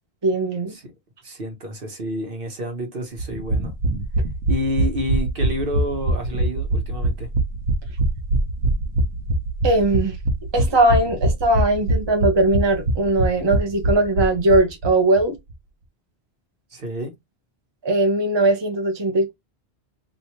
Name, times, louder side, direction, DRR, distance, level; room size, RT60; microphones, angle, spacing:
voice 1, 0.2-0.7 9.6-10.2 10.5-15.4 17.8-19.3, right 2 dB, 25° right, 0.9 m, -19 dB
voice 2, 1.2-3.7 4.5-7.3 16.7-17.2, left 1 dB, 55° right, 1.2 m, -29 dB
sound 1, 3.2-14.9 15.2-15.3 15.5-15.6, right 1 dB, 90° right, 1.0 m, -22 dB
3.1 x 2.8 x 2.7 m
omnidirectional pair, 1.1 m